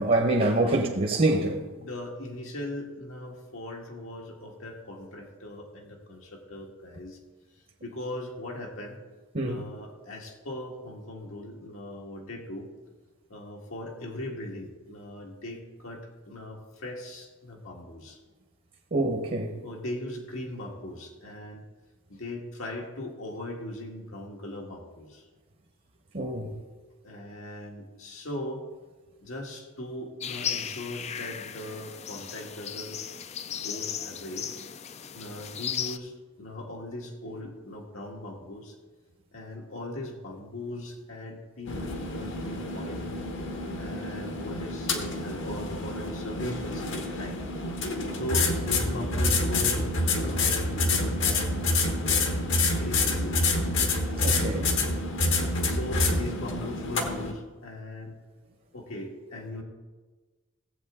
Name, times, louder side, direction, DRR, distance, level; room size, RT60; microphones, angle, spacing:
voice 1, 0.0-1.6 9.3-9.6 18.9-19.6 26.1-26.5 54.2-54.8, right 2 dB, 45° right, 1.0 m, -26 dB
voice 2, 1.8-7.2 7.8-9.0 9.4-12.7 13.3-18.2 19.6-21.6 22.1-25.3 27.0-28.7 29.2-33.0 33.5-34.5 35.1-38.8 39.3-43.1 43.7-47.5 48.1-51.5 52.0-53.5 55.6-58.2 58.7-59.6, left 1 dB, 80° left, 1.8 m, -39 dB
sound 1, 30.2-36.0, left 8 dB, 30° left, 0.4 m, -36 dB
sound 2, 41.7-57.3, left 2 dB, 65° left, 1.2 m, -27 dB
16.5 x 7.9 x 3.7 m
head